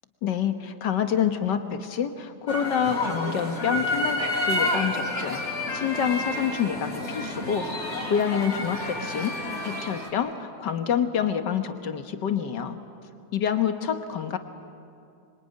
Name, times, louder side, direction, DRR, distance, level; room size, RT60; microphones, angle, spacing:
voice 1, 0.2-9.4 9.6-12.8 13.3-14.4, left 8 dB, 85° left, 8 dB, 2.0 m, -27 dB
sound 1, 2.5-10.1, left 1 dB, 40° left, 4.0 m, -30 dB
25.5 x 24.0 x 9.5 m, 2.5 s
omnidirectional pair, 1.8 m